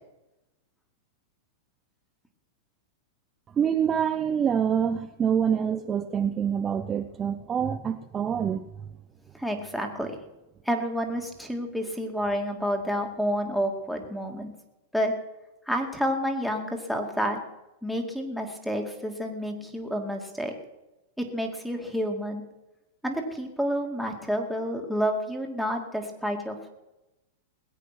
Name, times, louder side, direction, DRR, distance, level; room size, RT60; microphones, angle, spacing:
voice 1, 3.6-8.6, right 8 dB, 25° right, 8 dB, 0.6 m, -26 dB
voice 2, 9.3-10.1 10.7-14.5 14.9-15.2 15.7-17.4 17.8-20.5 21.2-22.4 23.0-26.7, equal, ahead, 4 dB, 2.3 m, -29 dB
20.0 x 8.4 x 6.0 m, 0.98 s
hypercardioid pair, 125°, 0 cm